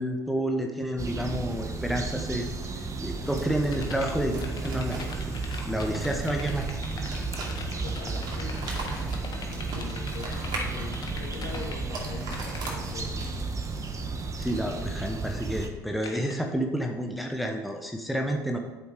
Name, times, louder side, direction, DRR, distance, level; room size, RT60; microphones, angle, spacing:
voice 1, 0.0-2.5 3.0-5.0 5.6-6.7 14.4-18.6, right 1 dB, ahead, 2 dB, 1.0 m, -29 dB
sound 1, 1.0-15.7, right 3 dB, 35° right, 1.1 m, -33 dB
sound 2, 3.1-13.6, right 2 dB, 50° right, 2.5 m, -41 dB
sound 3, 3.6-11.8 12.1-12.8 16.0-16.3, left 4 dB, 45° left, 1.5 m, -41 dB
voice 2, 7.8-13.4, left 4 dB, 65° left, -3 dB, 2.9 m, -43 dB
8.0 x 5.3 x 4.9 m, 1.2 s
hypercardioid pair, 65°, 10 cm